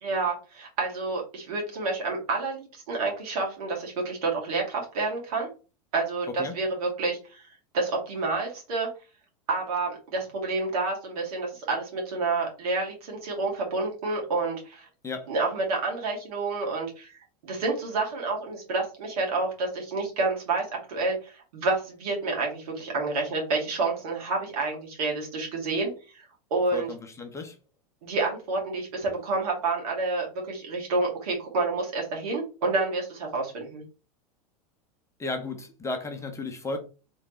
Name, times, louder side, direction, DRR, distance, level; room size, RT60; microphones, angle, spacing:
voice 1, 0.0-5.5 5.9-7.4 7.7-8.9 9.5-14.8 15.3-17.1 17.4-26.3 26.5-26.9 28.0-33.8, right 3 dB, 75° right, 2.3 m, -29 dB
voice 2, 26.7-27.5 35.2-36.8, left 3 dB, 15° left, 0.8 m, -34 dB
3.7 x 3.2 x 3.0 m
hypercardioid pair, 115°, 19 cm